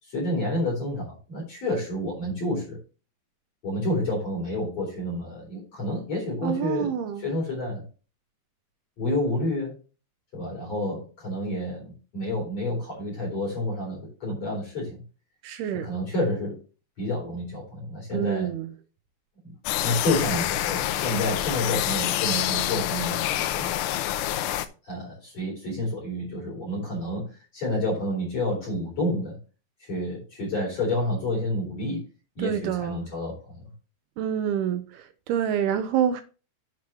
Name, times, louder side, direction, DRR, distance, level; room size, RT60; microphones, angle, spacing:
voice 1, 0.0-2.8 3.6-7.8 9.0-9.8 10.3-15.0 15.7-16.6 17.0-18.5 19.8-23.7 24.8-29.4 29.8-32.0 32.4-33.6, left 1 dB, 40° left, 4.8 m, -29 dB
voice 2, 6.4-7.2 15.4-15.9 18.1-18.7 32.4-33.0 34.2-34.8 35.3-36.2, right 9 dB, 80° right, 2.4 m, -26 dB
sound 1, 19.7-24.7, left 13 dB, 85° left, 2.3 m, -27 dB
10.5 x 7.5 x 3.1 m
omnidirectional pair, 5.1 m